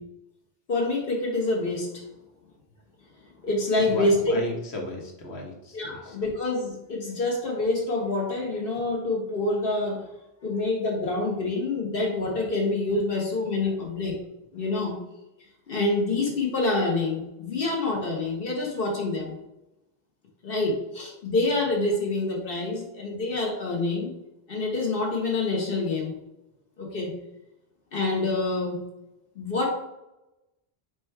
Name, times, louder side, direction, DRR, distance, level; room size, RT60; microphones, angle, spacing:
voice 1, 0.7-2.0 3.4-4.4 5.7-10.1 10.4-14.2 14.5-15.0 15.7-19.4 20.4-24.1 24.5-26.1 26.8-27.1 27.9-28.8 29.4-29.7, left 2 dB, 60° left, -1 dB, 1.1 m, -26 dB
voice 2, 3.8-6.2 13.5-13.8, left 2 dB, 80° left, 0 dB, 1.3 m, -36 dB
4.9 x 2.3 x 4.4 m, 0.94 s
omnidirectional pair, 1.1 m